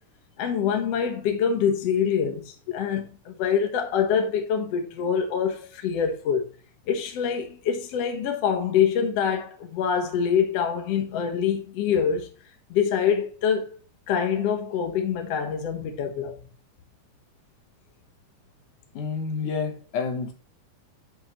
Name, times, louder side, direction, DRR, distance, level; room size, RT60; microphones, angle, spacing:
voice 1, 0.4-2.4 2.7-6.5 6.9-12.3 12.7-13.7 14.1-16.4, left 7 dB, 60° left, 2.2 m, -25 dB
voice 2, 19.0-20.3, left 5 dB, 75° left, 2.6 m, -29 dB
10.5 x 5.7 x 3.1 m
omnidirectional pair, 3.7 m